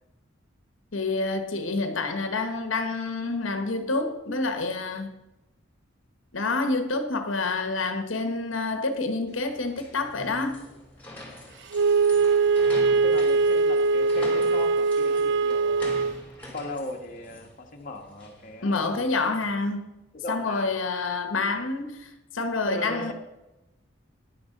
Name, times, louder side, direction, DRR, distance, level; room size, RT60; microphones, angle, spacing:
voice 1, 0.9-5.2 6.3-10.6 18.6-19.9 20.3-23.1, left 3 dB, 75° left, 1.2 m, -28 dB
sound 1, 9.3-19.7, left 1 dB, 10° left, 3.1 m, -45 dB
Wind instrument woodwind instrument, 11.7-16.2, right 4 dB, 60° right, 0.4 m, -22 dB
voice 2, 13.0-16.1 16.5-19.0 20.1-20.7 22.7-23.1, left 1 dB, 40° left, 1.2 m, -37 dB
10.5 x 6.5 x 6.5 m
head